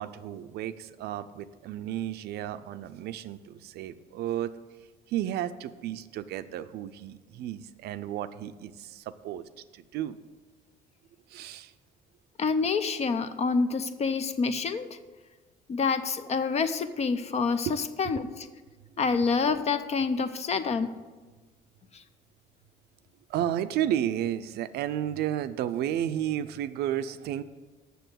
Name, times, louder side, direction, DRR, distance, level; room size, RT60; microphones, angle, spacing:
voice 1, 0.0-4.5 5.1-9.4 9.7-10.2 11.3-11.7 17.7-17.8 18.1-18.3 23.3-27.4, right 11 dB, 75° right, 12 dB, 0.5 m, -32 dB
voice 2, 12.4-15.0 15.7-18.5 19.0-20.9 21.9-22.0, left 5 dB, 40° left, 11 dB, 0.7 m, -27 dB
6.9 x 6.6 x 7.8 m, 1.3 s
cardioid pair, 110°, 17 cm